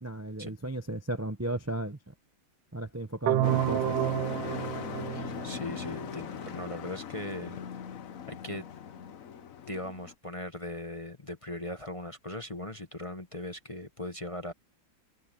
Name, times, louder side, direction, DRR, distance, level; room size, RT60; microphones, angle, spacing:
voice 1, 0.0-2.1 2.7-4.0, right 1 dB, 20° right, 0.4 m, -35 dB
sound 1, 3.3-6.2, right 14 dB, 80° right, 1.4 m, -30 dB
Truck, 3.4-10.1, left 8 dB, 50° left, 1.2 m, -39 dB
voice 2, 5.1-7.6 8.2-8.6 9.7-14.5, left 1 dB, 25° left, 0.8 m, -39 dB
omnidirectional pair, 2.1 m